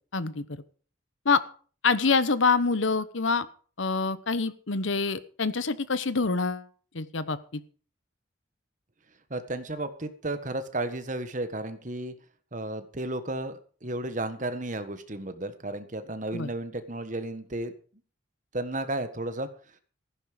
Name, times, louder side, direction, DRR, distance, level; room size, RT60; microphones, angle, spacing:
voice 1, 0.1-0.4 1.2-1.4 1.8-3.5 3.8-6.7 6.9-7.6 16.3-16.5, left 4 dB, 75° left, 15 dB, 1.0 m, -26 dB
voice 2, 9.3-12.1 12.5-17.7 18.5-19.5, right 2 dB, 40° right, 10 dB, 1.4 m, -33 dB
15.0 x 11.0 x 5.1 m, 0.41 s
head